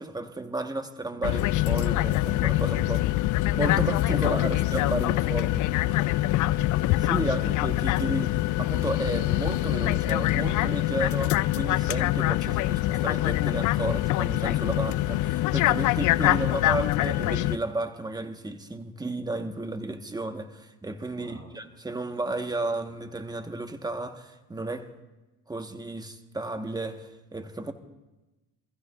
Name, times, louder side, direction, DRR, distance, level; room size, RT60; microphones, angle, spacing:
voice 1, 0.0-3.0 3.5-5.6 7.1-24.9 25.5-27.7, right 2 dB, 10° right, 1.2 m, -33 dB
sound 1, 1.2-17.6, left 16 dB, 55° left, 0.5 m, -24 dB
voice 2, 2.7-3.1 4.0-7.5 21.1-21.5, right 1 dB, 40° right, 4.4 m, -50 dB
24.5 x 15.0 x 2.5 m
supercardioid pair, 80°, 37 cm